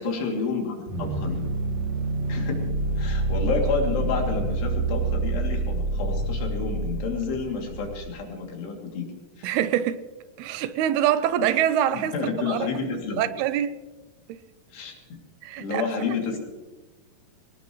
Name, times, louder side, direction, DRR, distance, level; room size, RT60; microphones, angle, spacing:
voice 1, 0.0-1.4 2.3-2.6 3.0-9.1 9.4-9.6 11.9-13.3 14.7-15.2 15.6-16.4, left 5 dB, 85° left, 4.9 m, -30 dB
sound 1, 0.9-8.1, right 2 dB, 55° right, 2.0 m, -27 dB
voice 2, 9.4-10.0 10.4-12.1 12.5-12.7 13.2-13.7 14.3-14.4 15.4-15.9, right 11 dB, 80° right, 2.5 m, -24 dB
24.5 x 18.0 x 3.2 m
omnidirectional pair, 4.6 m